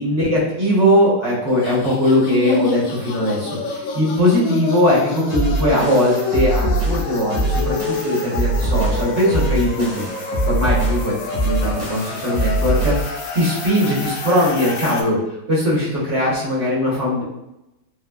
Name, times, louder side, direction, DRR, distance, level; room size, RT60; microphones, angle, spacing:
voice 1, 0.0-10.0 10.5-15.2 15.5-17.2, equal, 45° right, -8 dB, 1.1 m, -20 dB
sound 1, 1.5-15.0, left 4 dB, 90° left, 0.7 m, -28 dB
sound 2, 5.3-13.1, right 2 dB, 85° right, 1.8 m, -22 dB
4.7 x 2.0 x 2.2 m, 0.91 s
omnidirectional pair, 2.0 m